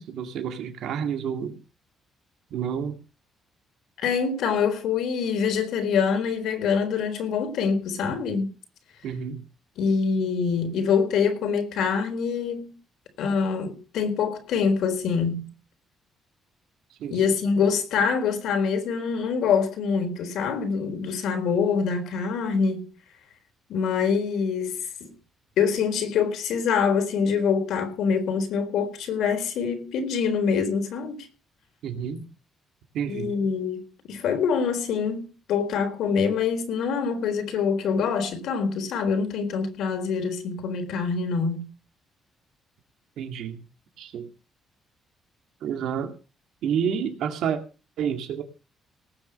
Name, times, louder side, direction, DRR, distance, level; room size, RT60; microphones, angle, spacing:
voice 1, 0.0-1.6 2.5-3.0 9.0-9.4 17.0-17.2 31.8-32.3 32.9-33.3 43.2-43.6 44.0-44.3 45.6-46.1 46.6-47.6 48.0-48.4, right 7 dB, 80° right, 2.2 m, -29 dB
voice 2, 4.0-8.5 9.8-12.7 13.2-15.5 17.1-22.9 23.7-25.1 25.6-31.3 33.1-41.7, left 6 dB, 80° left, 4.1 m, -25 dB
19.0 x 7.0 x 6.5 m
cardioid pair, 90°, 0 cm